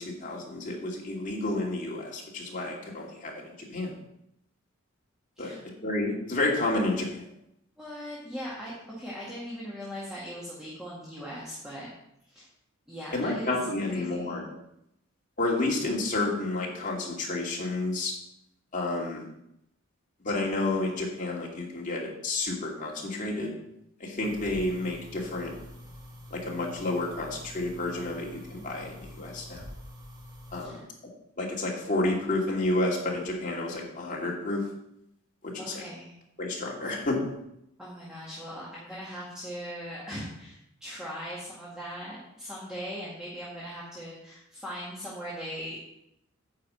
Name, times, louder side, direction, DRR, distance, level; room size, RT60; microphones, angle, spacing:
voice 1, 0.0-3.9 5.4-5.5 5.8-7.3 13.1-14.5 15.4-18.1 18.7-19.2 20.2-23.5 24.0-25.5 26.3-29.6 30.5-30.9 31.4-34.6 35.4-35.8 36.4-37.2, left 2 dB, 40° left, -3 dB, 2.6 m, -30 dB
voice 2, 7.8-11.9 12.2-12.5 12.9-13.5 13.8-14.3 30.6-30.9 35.6-36.1 37.8-45.8, equal, 5° right, -8 dB, 1.9 m, -40 dB
sound 1, 24.2-30.7, left 1 dB, 20° right, 1.8 m, -46 dB
9.4 x 5.2 x 7.8 m, 0.80 s
head